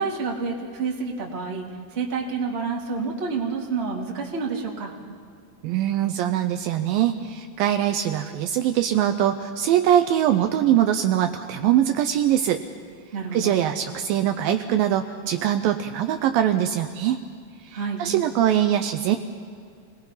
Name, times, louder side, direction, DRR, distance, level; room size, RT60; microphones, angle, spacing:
voice 1, 0.0-1.6 1.9-4.9 13.1-13.6 17.7-18.0, right 4 dB, 20° right, -1 dB, 1.8 m, -28 dB
voice 2, 5.6-12.6 13.3-17.2 17.6-19.2, right 11 dB, 75° right, 7 dB, 2.3 m, -22 dB
27.5 x 20.0 x 5.7 m, 2.3 s
omnidirectional pair, 4.5 m